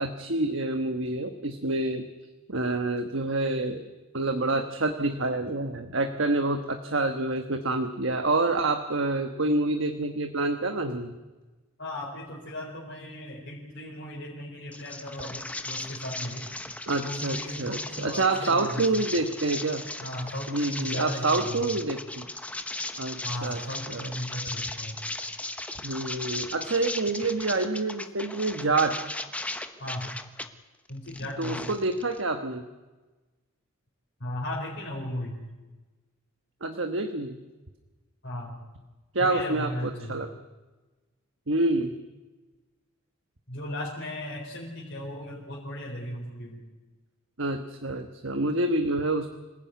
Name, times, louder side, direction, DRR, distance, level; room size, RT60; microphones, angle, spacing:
voice 1, 0.0-2.1 2.5-3.8 4.1-11.2 16.9-19.8 20.5-22.3 23.0-24.1 25.8-29.0 31.2-32.6 36.6-37.4 39.1-40.3 41.5-42.0 47.4-49.3, right 2 dB, 60° right, 7 dB, 1.3 m, -27 dB
voice 2, 11.8-16.5 17.0-18.9 20.0-21.6 23.2-25.0 29.8-30.1 30.9-31.7 34.2-35.4 38.2-38.6 39.2-40.1 43.5-46.6, left 1 dB, 50° left, -3 dB, 4.4 m, -36 dB
sound 1, 14.7-30.5 30.9-32.2, left 2 dB, 5° left, 1.0 m, -37 dB
26.0 x 16.5 x 9.3 m, 1.2 s
head